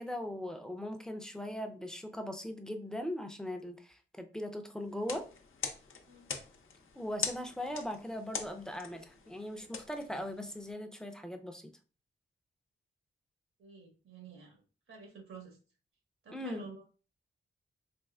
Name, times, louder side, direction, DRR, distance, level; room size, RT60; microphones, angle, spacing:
voice 1, 0.0-5.3 7.0-11.7 16.3-16.7, left 1 dB, 5° left, 0.4 m, -39 dB
sound 1, 4.9-10.7, left 5 dB, 80° left, 0.6 m, -43 dB
voice 2, 13.6-14.6 14.9-15.6 16.2-16.8, right 4 dB, 90° right, 1.4 m, -50 dB
4.2 x 3.0 x 2.3 m
wide cardioid pair, 115°, 20 cm